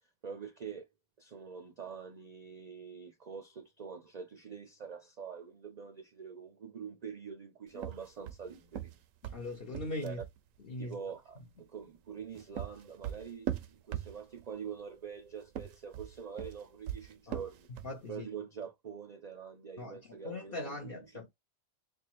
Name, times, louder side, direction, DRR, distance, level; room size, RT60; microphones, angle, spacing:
voice 1, 0.2-0.9 1.2-9.0 10.0-10.2 10.8-17.7 18.1-21.0, right 6 dB, 50° right, 0.5 m, -45 dB
sound 1, 7.7-10.4 12.1-14.5 15.4-18.0, right 11 dB, 85° right, 1.0 m, -40 dB
voice 2, 9.2-10.2 10.6-11.0 17.3-17.4 17.8-18.3 19.8-21.3, left 2 dB, 50° left, 1.0 m, -40 dB
4.3 x 2.4 x 2.9 m
omnidirectional pair, 1.3 m